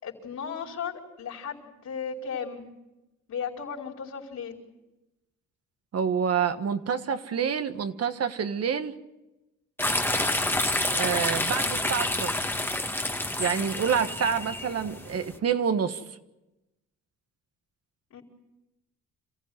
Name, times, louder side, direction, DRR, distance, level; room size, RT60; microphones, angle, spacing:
voice 1, 0.0-2.7 3.3-4.6 18.1-18.2, left 6 dB, 65° left, -2 dB, 4.7 m, -35 dB
voice 2, 5.9-9.0 10.9-12.5 13.4-16.0, right 7 dB, 55° right, 9 dB, 1.6 m, -27 dB
sound 1, 9.8-15.4, left 1 dB, 5° left, 1.7 m, -28 dB
27.5 x 15.5 x 9.5 m, 0.99 s
cardioid pair, 90°, 30 cm